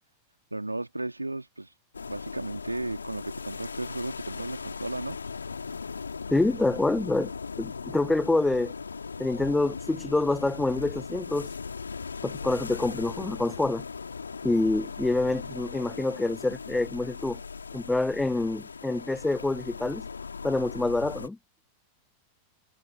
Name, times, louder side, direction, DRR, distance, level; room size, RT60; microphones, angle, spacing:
voice 1, 0.5-1.7 2.1-5.2, right 2 dB, 85° right, 2.0 m, -34 dB
sound 1, 1.9-21.3, left 5 dB, 75° left, 2.9 m, -38 dB
voice 2, 6.3-7.3 7.6-8.7 9.2-11.5 12.2-13.8 14.4-17.4 17.7-20.0 20.4-21.4, left 2 dB, 5° left, 0.7 m, -26 dB
figure-of-eight pair, 90°, 0 cm